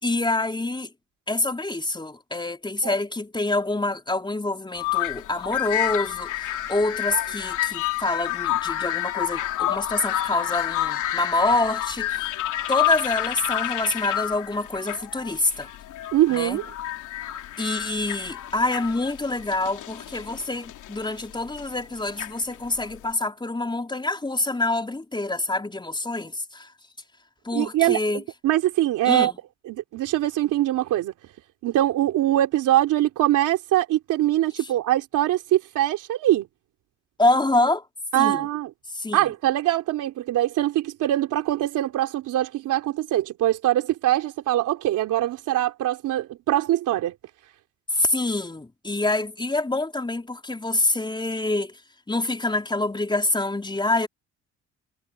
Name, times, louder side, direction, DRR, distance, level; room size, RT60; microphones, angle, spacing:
voice 1, 0.0-0.9 1.3-12.4 12.7-15.7 16.3-16.6 17.6-26.7 27.4-28.2 29.0-29.4 37.2-37.8 38.1-38.5 38.9-39.3 47.9-51.8 52.1-54.1, left 2 dB, 15° left, 4.4 m, -26 dB
sound 1, 4.8-23.0, left 14 dB, 80° left, 3.1 m, -29 dB
voice 2, 16.1-16.6 27.5-28.0 28.4-29.3 29.7-31.1 31.6-36.5 38.1-38.7 39.1-47.1, right 14 dB, 85° right, 3.3 m, -23 dB
cardioid pair, 90°, 30 cm